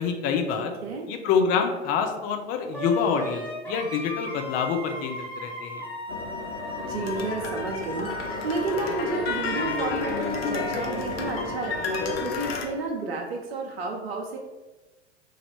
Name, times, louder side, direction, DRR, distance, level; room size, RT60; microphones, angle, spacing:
voice 1, 0.0-0.7 1.1-5.8, left 6 dB, 25° left, 4 dB, 0.4 m, -26 dB
voice 2, 0.6-1.1 6.8-14.4, right 3 dB, 60° right, 1 dB, 0.7 m, -31 dB
Wind instrument woodwind instrument, 2.7-12.6, left 1 dB, 5° left, 1.0 m, -37 dB
sound 1, 6.1-12.6, left 4 dB, 55° left, 0.7 m, -31 dB
3.1 x 2.5 x 4.3 m, 1.1 s
figure-of-eight pair, 90°, 35 cm